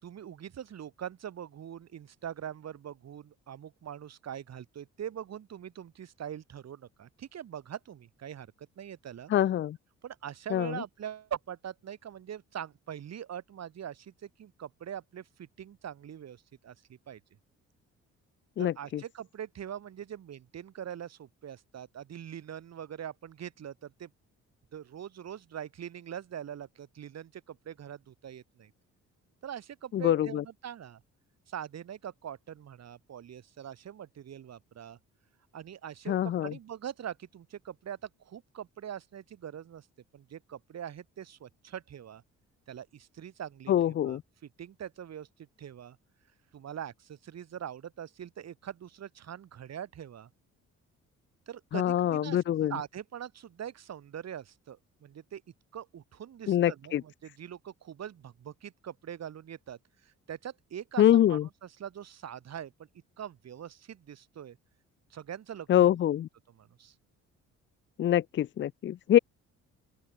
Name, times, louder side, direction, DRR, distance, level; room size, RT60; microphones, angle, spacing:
voice 1, 0.0-9.3 10.0-17.2 18.6-24.1 24.7-28.7 29.4-31.0 31.5-35.0 35.5-39.9 40.1-42.2 42.7-44.2 44.6-46.0 46.5-50.3 51.5-55.4 55.7-61.0 61.3-62.9 63.2-64.6 65.1-66.0 66.5-66.9, right 9 dB, 60° right, 3.1 m, -43 dB
voice 2, 9.3-9.8 10.5-10.8 18.6-19.0 29.9-30.4 36.1-36.5 43.7-44.2 51.7-52.7 56.5-57.0 61.0-61.4 65.7-66.3 68.0-69.2, left 11 dB, 40° left, 0.4 m, -25 dB
open air
cardioid pair, 90°, 30 cm